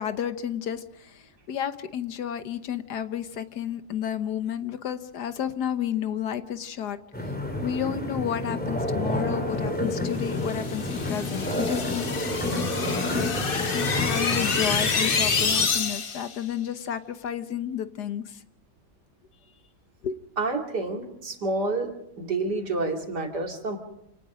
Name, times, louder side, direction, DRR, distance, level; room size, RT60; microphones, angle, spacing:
voice 1, 0.0-7.0 7.3-7.4 7.6-12.1 13.7-18.4 20.0-20.2, left 9 dB, 75° left, 11 dB, 1.6 m, -31 dB
sound 1, 7.1-15.7, left 1 dB, 5° left, 3.2 m, -29 dB
sound 2, 10.4-16.3, left 5 dB, 35° left, 1.1 m, -28 dB
voice 2, 20.4-21.9 22.2-23.8, right 2 dB, 70° right, 3 dB, 3.2 m, -28 dB
28.5 x 18.5 x 5.1 m, 0.78 s
omnidirectional pair, 1.8 m